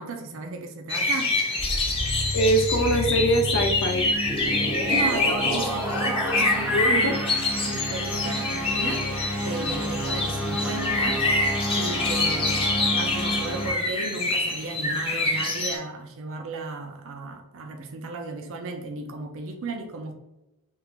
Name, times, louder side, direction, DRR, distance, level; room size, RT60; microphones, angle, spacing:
voice 1, 0.0-1.4 4.9-7.2 7.5-9.0 9.4-11.2 11.8-20.1, right 3 dB, 60° right, 4 dB, 0.5 m, -34 dB
sound 1, 0.9-15.8, left 2 dB, 25° left, 0.8 m, -26 dB
sound 2, 1.6-13.7, equal, 5° right, 0.6 m, -30 dB
voice 2, 2.3-4.1 6.2-6.4 6.7-7.2, right 1 dB, 60° left, 2 dB, 0.5 m, -23 dB
3.6 x 2.5 x 2.9 m, 0.94 s
head